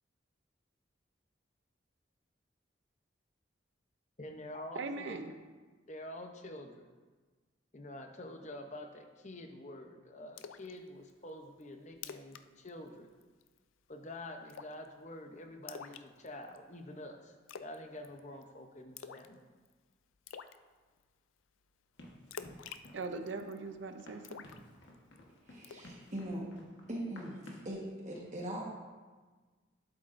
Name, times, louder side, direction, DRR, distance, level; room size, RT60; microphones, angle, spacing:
voice 1, 4.2-5.4 5.9-6.9 7.7-13.1 13.9-19.4, left 1 dB, 35° left, 4 dB, 0.7 m, -47 dB
voice 2, 4.8-5.4 22.9-24.5, right 3 dB, 70° right, 7 dB, 0.6 m, -40 dB
Splash splatter, 10.4-10.7 11.1-11.2 11.6-11.7 11.9-12.4 12.7-12.9 13.2-13.6 14.5-14.9 15.7-16.6 17.5-17.8 18.0-18.4 19.0-19.3 19.7-19.8 20.3-20.6 22.3-23.6 24.2-25.2 25.6-25.9, left 7 dB, 85° left, 0.4 m, -47 dB
Run, 22.0-27.8, left 1 dB, 65° left, 1.3 m, -55 dB
voice 3, 25.5-26.5 26.9-27.4 27.6-28.6, right 1 dB, 35° right, -3 dB, 1.3 m, -40 dB
11.5 x 7.7 x 2.6 m, 1.4 s
head